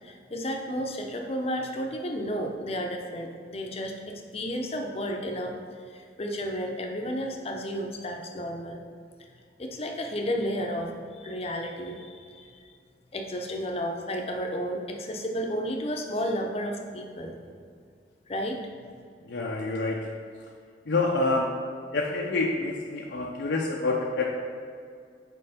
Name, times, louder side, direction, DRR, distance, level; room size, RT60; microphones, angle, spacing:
voice 1, 0.0-5.5 5.9-8.8 9.6-12.7 13.1-17.4 18.3-18.6, equal, 35° left, 3 dB, 0.6 m, -32 dB
voice 2, 19.2-20.1 20.9-21.5 21.9-24.4, left 3 dB, 75° left, -1 dB, 0.5 m, -27 dB
5.4 x 4.6 x 4.2 m, 2.2 s
head